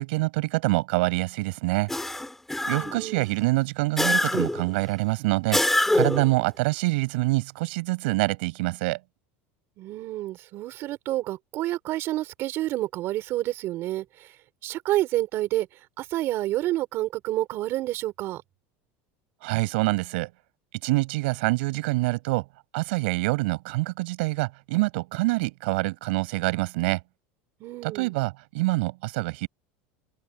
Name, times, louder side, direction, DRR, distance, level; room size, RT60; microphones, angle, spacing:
voice 1, 0.0-1.9 2.6-5.6 5.9-9.0 19.4-20.3 20.8-22.4 22.7-27.0 27.8-29.5, right 23 dB, 80° right, 6.8 m, -26 dB
sound 1, 1.9-3.1 4.0-4.7 5.5-6.3, left 1 dB, 5° left, 5.0 m, -24 dB
voice 2, 2.6-3.3 9.8-14.0 14.6-15.7 16.0-18.4 27.6-28.1, right 15 dB, 45° right, 4.9 m, -29 dB
supercardioid pair, 155°, 6 cm